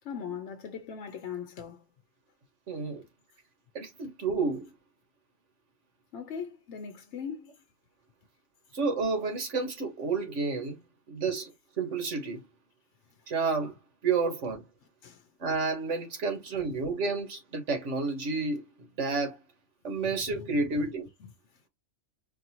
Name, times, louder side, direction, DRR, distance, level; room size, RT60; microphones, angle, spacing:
voice 1, 0.0-1.9 6.1-7.6 15.0-15.3 20.1-20.9 21.2-21.3, left 7 dB, 75° left, 0.9 m, -40 dB
voice 2, 2.7-3.0 3.7-4.7 8.7-10.8 11.1-11.5 11.8-12.4 13.3-13.8 14.0-14.6 15.4-19.4 19.8-21.1, right 4 dB, 75° right, 1.6 m, -30 dB
4.6 x 2.5 x 2.9 m
omnidirectional pair, 1.2 m